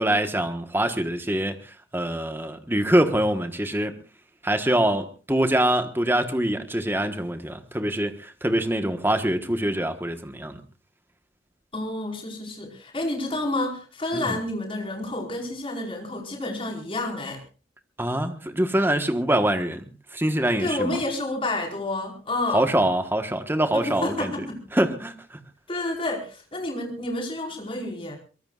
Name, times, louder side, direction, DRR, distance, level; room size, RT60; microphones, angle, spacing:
voice 1, 0.0-1.6 1.9-4.0 4.4-10.6 14.1-14.4 18.0-19.8 20.1-21.0 22.5-24.3 24.7-25.4, right 1 dB, 10° right, 1.3 m, -24 dB
voice 2, 11.7-17.4 20.6-22.6 23.7-24.6 25.7-28.2, left 2 dB, 30° left, 5.0 m, -29 dB
23.0 x 22.5 x 2.5 m
head